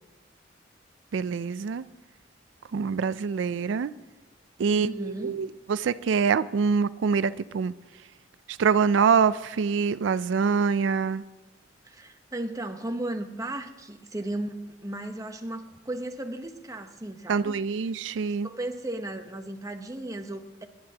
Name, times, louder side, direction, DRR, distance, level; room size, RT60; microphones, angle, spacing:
voice 1, 1.1-1.8 2.7-3.9 4.6-7.7 8.6-11.2 17.3-18.5, right 5 dB, 90° right, 15 dB, 0.4 m, -25 dB
voice 2, 4.7-5.4 11.8-17.6 18.4-20.6, right 1 dB, 20° right, 6 dB, 0.9 m, -35 dB
25.0 x 11.0 x 2.9 m, 1.1 s
head